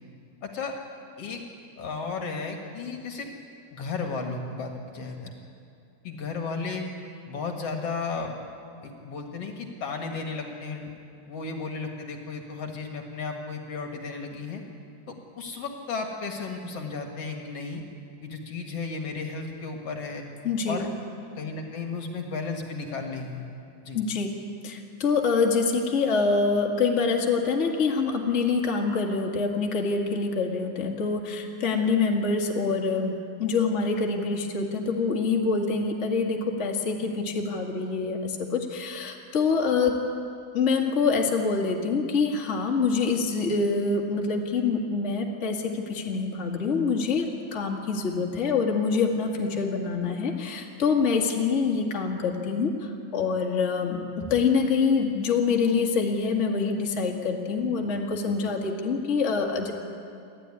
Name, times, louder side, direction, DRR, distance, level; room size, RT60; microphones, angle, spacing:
voice 1, 0.4-0.8 1.2-1.4 1.8-3.3 3.7-5.3 6.0-6.8 7.3-8.4 8.8-10.9 11.3-14.6 15.1-17.8 18.2-20.2 20.7-20.9 21.4-23.5 23.8-24.0, left 4 dB, 55° left, 2 dB, 2.5 m, -34 dB
voice 2, 20.4-20.8 23.9-33.1 33.4-40.0 40.5-59.7, left 4 dB, 25° left, 0 dB, 1.9 m, -25 dB
28.5 x 12.0 x 9.9 m, 2.5 s
omnidirectional pair, 3.4 m